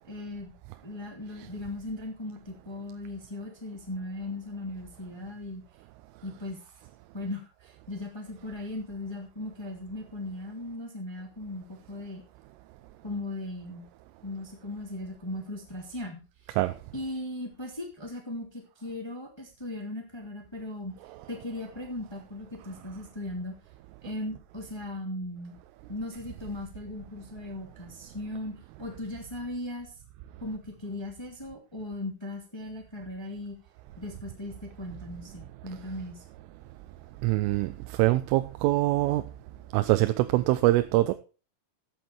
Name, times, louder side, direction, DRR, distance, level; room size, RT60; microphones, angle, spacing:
voice 1, 0.1-0.5 0.8-5.6 6.2-6.6 7.1-12.2 13.0-13.9 14.2-16.2 16.9-20.9 21.3-23.5 24.0-25.5 25.9-29.9 30.4-33.6 34.0-36.2, left 1 dB, 10° left, 1.1 m, -38 dB
voice 2, 37.2-39.2 39.7-41.1, right 17 dB, 85° right, 3.2 m, -24 dB
14.5 x 8.2 x 4.5 m
omnidirectional pair, 5.7 m